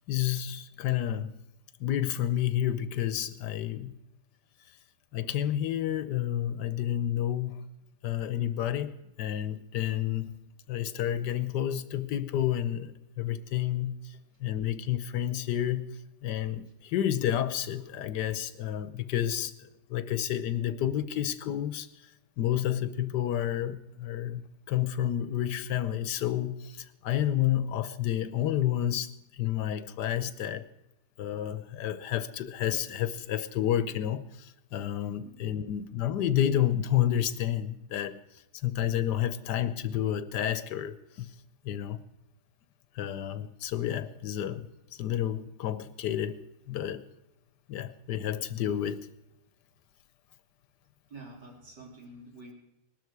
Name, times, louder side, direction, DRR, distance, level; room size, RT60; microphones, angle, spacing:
voice 1, 0.1-1.3 1.8-4.0 5.1-7.6 8.0-10.4 10.7-14.1 14.4-15.8 16.2-19.5 19.9-21.9 22.4-24.4 24.7-30.7 31.2-38.2 38.6-41.3 41.6-42.0 42.9-47.0 47.7-49.1, left 11 dB, 90° left, 1.4 m, -30 dB
voice 2, 35.2-35.5 51.1-52.5, right 2 dB, 90° right, 3.8 m, -48 dB
19.0 x 12.5 x 4.7 m
omnidirectional pair, 1.8 m